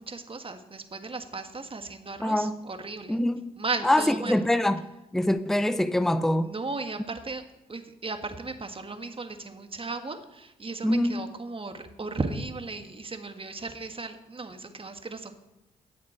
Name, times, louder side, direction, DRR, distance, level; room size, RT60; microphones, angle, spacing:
voice 1, 0.0-3.2 3.6-4.4 6.4-7.4 7.7-15.3, right 3 dB, 30° right, 1.7 m, -36 dB
voice 2, 2.2-2.6 3.1-3.4 3.8-4.8 5.1-6.5 10.8-11.2, left 1 dB, ahead, 0.7 m, -24 dB
17.0 x 7.2 x 4.5 m
hypercardioid pair, 40°, 19 cm